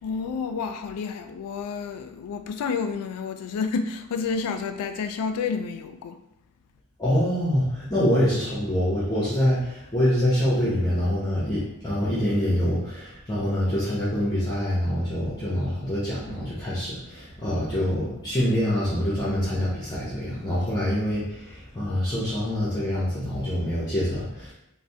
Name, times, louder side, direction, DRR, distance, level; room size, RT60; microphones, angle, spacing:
voice 1, 0.0-6.2, left 5 dB, 85° left, 0.3 m, -30 dB
voice 2, 7.0-24.5, equal, 20° left, 0.6 m, -25 dB
3.1 x 2.1 x 2.6 m
head